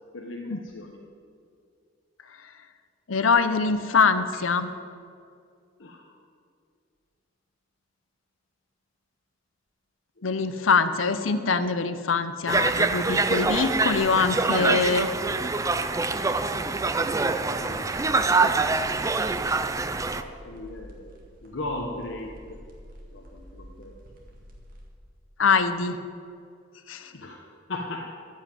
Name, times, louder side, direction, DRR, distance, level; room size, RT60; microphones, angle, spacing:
voice 1, 0.1-1.0 5.8-6.1 10.2-10.9 16.8-18.7 20.1-21.1 21.4-22.6 23.1-24.0 27.1-28.1, left 2 dB, 70° left, -1 dB, 1.1 m, -38 dB
voice 2, 3.1-4.7 10.2-15.1 25.4-26.0 26.9-27.1, left 5 dB, 90° left, 11 dB, 0.7 m, -23 dB
Conversation, 12.5-20.2, right 3 dB, 15° right, 0.4 m, -25 dB
sound 1, 17.5-24.9, equal, 45° right, 2.0 m, -48 dB
14.0 x 5.7 x 9.1 m, 2.3 s
head